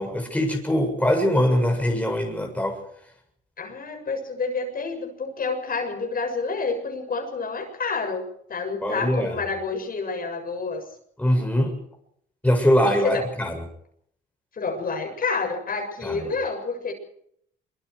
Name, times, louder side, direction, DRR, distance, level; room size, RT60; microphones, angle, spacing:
voice 1, 0.0-2.8 8.8-9.4 11.2-11.7 12.4-13.5 16.0-16.2, equal, 5° left, 2 dB, 7.6 m, -22 dB
voice 2, 3.6-10.8 12.8-13.2 14.5-16.9, left 4 dB, 45° left, 4 dB, 7.3 m, -29 dB
25.0 x 24.0 x 5.0 m, 0.68 s
cardioid pair, 90°, 20 cm